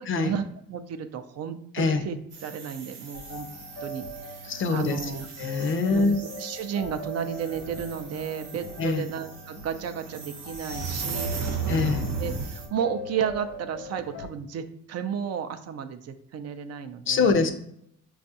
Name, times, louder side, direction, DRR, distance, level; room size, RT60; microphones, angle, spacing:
voice 1, 0.0-3.5 3.8-5.3 5.9-6.1 6.4-11.9 12.2-17.4, right 8 dB, 55° right, 9 dB, 0.4 m, -33 dB
sound 1, 2.3-12.7, right 4 dB, 90° right, 0.9 m, -36 dB
sound 2, 3.1-14.3, equal, 80° left, 1.0 m, -41 dB
voice 2, 4.5-5.0 5.4-6.2 8.8-9.1 11.7-12.1 17.1-17.5, left 4 dB, 45° left, 8 dB, 0.5 m, -24 dB
5.2 x 2.3 x 2.7 m, 0.71 s
cardioid pair, 90°, 30 cm